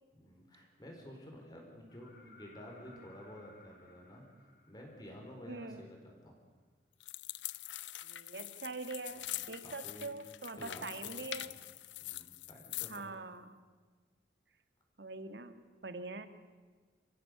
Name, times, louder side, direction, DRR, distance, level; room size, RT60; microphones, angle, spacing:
voice 1, 0.1-6.3 9.2-10.1 10.5-11.5 12.0-13.1, equal, 20° left, 0 dB, 4.5 m, -52 dB
sound 1, 1.9-5.7 7.6-7.7, left 2 dB, 60° left, 3.4 m, -61 dB
voice 2, 5.5-5.9 8.0-11.6 12.9-13.6 15.0-16.3, right 3 dB, 70° right, 10 dB, 1.6 m, -44 dB
sound 2, 7.0-13.1, left 15 dB, 90° left, 0.6 m, -44 dB
27.0 x 15.0 x 8.3 m, 1.4 s
head